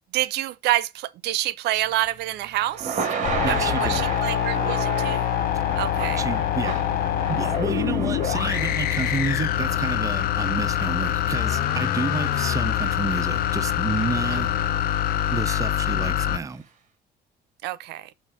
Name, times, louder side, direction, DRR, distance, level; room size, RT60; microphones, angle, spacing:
voice 1, 0.1-3.1 3.4-5.3 5.8-6.2 14.3-14.6 17.6-18.1, right 15 dB, 80° right, 0.6 m, -27 dB
Thunder / Rain, 1.8-16.1, right 6 dB, 45° right, 2.0 m, -35 dB
sound 1, 3.2-16.4, left 12 dB, 65° left, 0.6 m, -24 dB
voice 2, 3.4-4.2 6.2-6.8 7.3-14.5 15.3-16.7, right 4 dB, 20° right, 0.5 m, -30 dB
7.3 x 2.5 x 5.5 m
cardioid pair, 110°, 17 cm